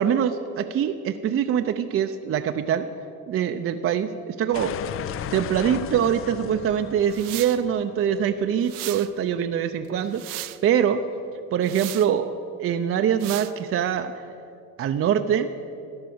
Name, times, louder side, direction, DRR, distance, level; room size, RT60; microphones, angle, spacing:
voice 1, 0.0-2.9 3.3-4.8 5.3-11.0 11.5-12.3 12.6-14.1 14.8-15.5, right 9 dB, 45° right, 7 dB, 0.6 m, -24 dB
sound 1, 4.5-9.3, left 10 dB, 45° left, 0.4 m, -36 dB
sound 2, 7.1-7.6 8.6-9.1 9.8-10.6 11.6-12.1 13.2-13.5, right 18 dB, 85° right, 0.6 m, -35 dB
13.0 x 10.5 x 7.8 m, 2.6 s
cardioid pair, 130°, 33 cm